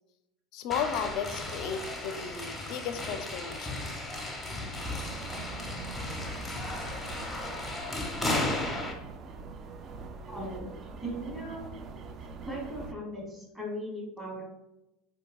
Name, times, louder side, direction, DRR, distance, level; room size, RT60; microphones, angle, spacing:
voice 1, 0.5-3.8, left 7 dB, 60° left, 8 dB, 0.4 m, -34 dB
sound 1, 0.7-8.9, left 2 dB, 5° left, 0.7 m, -35 dB
sound 2, 4.8-12.9, right 4 dB, 40° right, 0.3 m, -43 dB
voice 2, 10.3-10.7 11.0-11.7 12.4-14.4, equal, 15° right, -3 dB, 1.5 m, -38 dB
4.6 x 2.6 x 2.2 m, 0.90 s
supercardioid pair, 120°, 0 cm